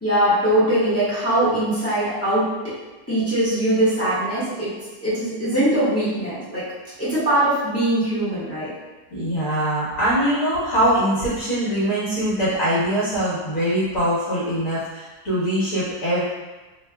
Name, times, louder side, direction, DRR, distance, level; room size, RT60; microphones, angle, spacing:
voice 1, 0.0-2.7 3.1-4.7 5.0-6.6 7.0-8.7, right 1 dB, 10° left, -12 dB, 1.2 m, -21 dB
voice 2, 9.1-16.2, right 1 dB, 55° left, -10 dB, 1.6 m, -22 dB
3.1 x 2.6 x 3.3 m, 1.2 s
omnidirectional pair, 1.7 m